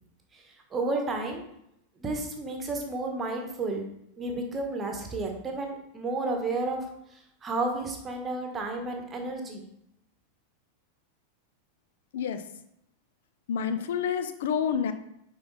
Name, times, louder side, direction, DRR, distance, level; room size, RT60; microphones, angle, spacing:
voice 1, 0.7-1.4 2.0-3.8 4.2-6.8 7.4-9.6, right 2 dB, 20° right, 2 dB, 1.4 m, -31 dB
voice 2, 13.5-14.9, left 7 dB, 55° left, 9 dB, 0.7 m, -28 dB
9.6 x 4.0 x 4.1 m, 0.77 s
figure-of-eight pair, 90°, 0 cm